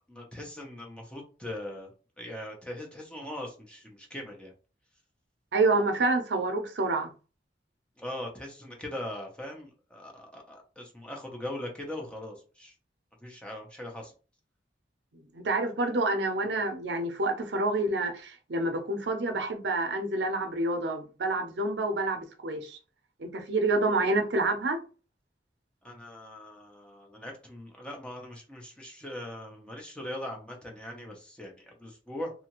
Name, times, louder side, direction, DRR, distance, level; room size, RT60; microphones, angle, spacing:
voice 1, 0.1-4.5 8.0-12.7 13.2-14.1 25.8-32.3, left 1 dB, 5° left, 0.6 m, -40 dB
voice 2, 5.5-7.1 15.3-22.8 23.2-24.8, right 2 dB, 75° right, 0.5 m, -28 dB
2.7 x 2.4 x 2.9 m
head